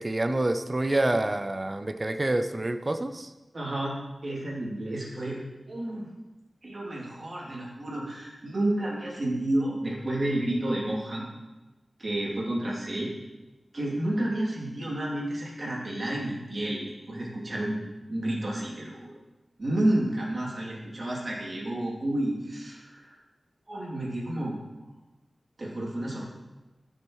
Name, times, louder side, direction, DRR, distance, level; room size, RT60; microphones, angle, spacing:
voice 1, 0.0-3.3, right 2 dB, 30° right, 9 dB, 0.5 m, -27 dB
voice 2, 3.5-4.0 4.2-5.4 5.7-6.1 6.6-11.3 12.0-13.1 13.7-17.8 18.1-18.9 19.6-23.1 23.7-24.5 25.6-26.2, right 1 dB, 55° right, -4 dB, 2.7 m, -30 dB
14.5 x 6.4 x 3.1 m, 1.1 s
wide cardioid pair, 90°, 0 cm